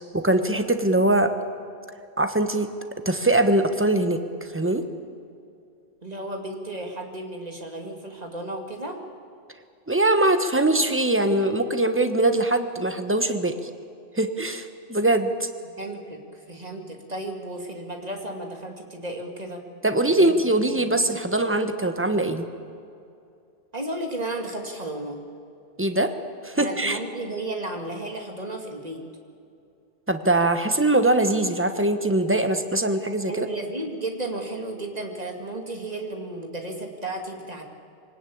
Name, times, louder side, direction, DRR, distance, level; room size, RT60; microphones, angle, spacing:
voice 1, 0.1-1.3 2.2-2.7 3.0-4.2 4.5-4.9 9.9-13.7 14.2-15.5 19.8-22.5 25.8-26.1 26.4-27.0 30.1-33.5, right 2 dB, 10° right, 8 dB, 1.3 m, -22 dB
voice 2, 6.0-9.0 15.6-19.6 20.1-20.3 20.7-20.9 23.7-25.2 26.6-29.0 33.3-37.6, right 2 dB, 40° right, 3 dB, 2.6 m, -33 dB
24.5 x 18.5 x 8.7 m, 2.6 s
omnidirectional pair, 1.0 m